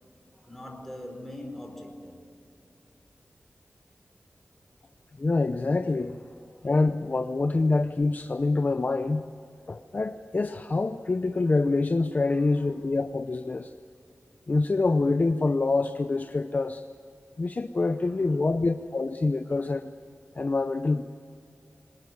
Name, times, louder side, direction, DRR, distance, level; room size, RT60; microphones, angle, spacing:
voice 1, 0.3-2.2 6.1-6.7 7.2-7.4 12.4-12.9 18.0-18.7 19.0-19.1, left 1 dB, 5° left, 3 dB, 4.5 m, -44 dB
voice 2, 5.2-6.2 6.6-9.3 9.7-13.7 14.5-16.8 17.4-19.9 20.4-21.0, left 3 dB, 40° left, 9 dB, 0.7 m, -26 dB
25.0 x 19.0 x 9.6 m, 2.4 s
wide cardioid pair, 110°, 5 cm